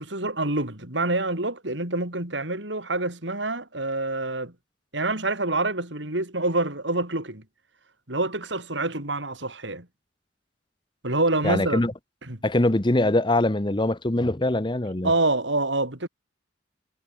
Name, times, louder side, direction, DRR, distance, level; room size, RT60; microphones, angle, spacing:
voice 1, 0.0-4.5 4.9-7.4 8.1-9.9 11.0-11.8 12.3-12.4 15.0-16.1, right 2 dB, 70° right, 5.2 m, -26 dB
voice 2, 11.4-11.9 12.4-15.1, left 1 dB, 25° left, 1.0 m, -23 dB
head